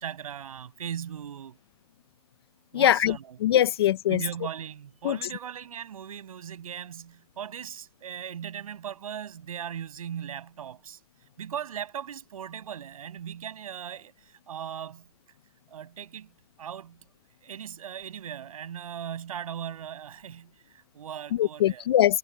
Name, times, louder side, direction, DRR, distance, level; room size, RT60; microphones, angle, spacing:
voice 1, 0.0-1.6 2.7-3.4 4.1-11.0 11.4-15.1 15.7-16.3 16.6-17.0 17.4-21.9, right 9 dB, 65° right, 7.4 m, -38 dB
voice 2, 2.7-3.2 3.4-4.2 5.0-5.2 21.4-22.2, left 12 dB, 40° left, 0.5 m, -22 dB
hypercardioid pair, 160°, 20 cm